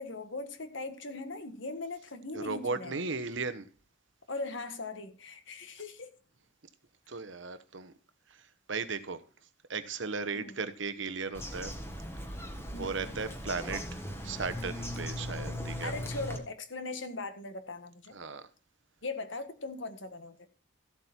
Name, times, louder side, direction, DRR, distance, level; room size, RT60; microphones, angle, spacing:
voice 1, 0.0-3.0 4.3-6.1 10.3-10.6 12.7-13.1 15.8-18.1 19.0-20.5, left 3 dB, 65° left, 1.7 m, -40 dB
voice 2, 2.3-3.7 7.1-7.9 8.3-9.2 9.7-11.7 12.8-15.9 18.1-18.5, right 4 dB, 65° right, 1.1 m, -36 dB
Bird vocalization bird call bird song, 11.3-16.4, equal, 10° left, 1.6 m, -39 dB
14.5 x 8.1 x 4.4 m
head